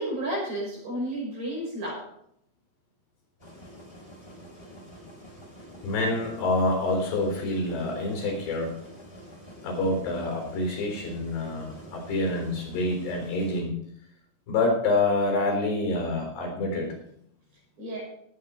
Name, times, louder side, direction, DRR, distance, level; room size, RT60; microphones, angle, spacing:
voice 1, 0.0-2.1 17.8-18.0, right 1 dB, 55° right, -4 dB, 7.7 m, -32 dB
sound 1, 3.4-13.6, equal, 5° left, 3.2 m, -47 dB
voice 2, 5.8-8.7 9.6-13.7 14.5-16.9, left 2 dB, 75° left, 1 dB, 6.1 m, -27 dB
18.5 x 8.6 x 4.4 m, 0.72 s
omnidirectional pair, 4.9 m